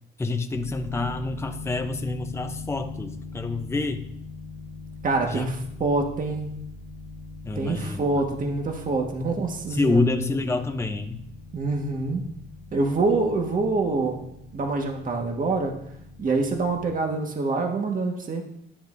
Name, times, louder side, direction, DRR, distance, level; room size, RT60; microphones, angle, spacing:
voice 1, 0.2-4.1 5.3-5.5 7.4-8.0 9.7-11.2, left 3 dB, 15° left, 6 dB, 0.7 m, -27 dB
sound 1, 0.5-16.9, left 3 dB, 85° left, 1.3 m, -41 dB
voice 2, 5.0-6.5 7.5-10.0 11.5-12.2 12.7-14.2 14.5-15.7 16.2-18.4, right 3 dB, 45° right, 2 dB, 1.6 m, -25 dB
10.5 x 9.8 x 2.7 m, 0.75 s
cardioid pair, 90°, 20 cm